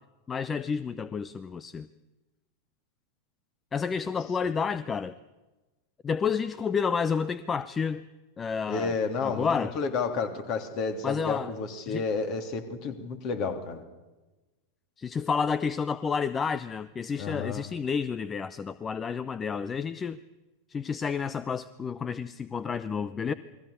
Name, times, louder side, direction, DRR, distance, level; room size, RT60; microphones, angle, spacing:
voice 1, 0.3-1.9 3.7-5.1 6.0-8.0 8.4-8.9 9.2-9.7 11.0-11.5 11.9-12.0 15.0-20.2 20.7-23.3, left 6 dB, 20° left, 17 dB, 0.7 m, -30 dB
voice 2, 8.7-13.8 17.2-17.6 23.3-23.4, left 4 dB, 40° left, 7 dB, 3.2 m, -31 dB
29.0 x 22.0 x 6.9 m, 1.1 s
figure-of-eight pair, 90°, 0 cm